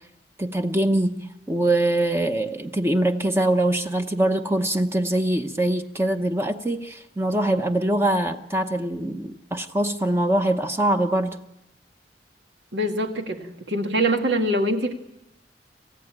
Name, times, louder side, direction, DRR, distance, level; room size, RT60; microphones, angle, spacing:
voice 1, 0.4-11.4, right 1 dB, 15° right, 6 dB, 0.8 m, -23 dB
voice 2, 12.7-14.9, right 1 dB, 80° right, 5 dB, 2.1 m, -24 dB
27.0 x 15.0 x 8.9 m, 0.92 s
head